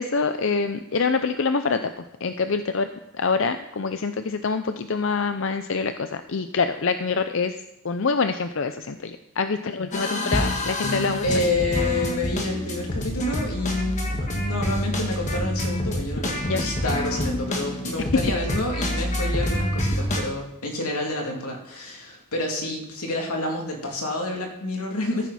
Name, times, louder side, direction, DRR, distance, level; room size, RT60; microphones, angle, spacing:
voice 1, 0.0-2.9 3.2-7.6 7.8-11.4 16.5-16.6, left 4 dB, 60° left, 9 dB, 0.5 m, -25 dB
sound 1, 9.9-20.2, left 1 dB, 30° left, 1.7 m, -27 dB
voice 2, 11.2-25.3, left 2 dB, 90° left, 0 dB, 2.8 m, -28 dB
14.5 x 9.2 x 4.2 m, 0.85 s
head